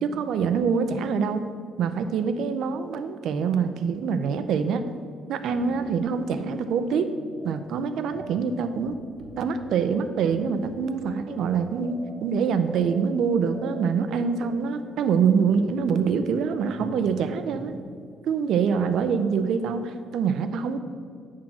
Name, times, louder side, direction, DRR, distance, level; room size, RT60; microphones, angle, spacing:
voice 1, 0.0-1.4 1.8-4.8 5.3-7.1 7.4-9.0 9.4-17.7 18.3-20.8, right 6 dB, 70° right, 9 dB, 0.5 m, -25 dB
sound 1, 5.5-17.8, right 1 dB, 55° right, 1.1 m, -43 dB
8.9 x 3.7 x 6.0 m, 2.2 s
cardioid pair, 135°, 0 cm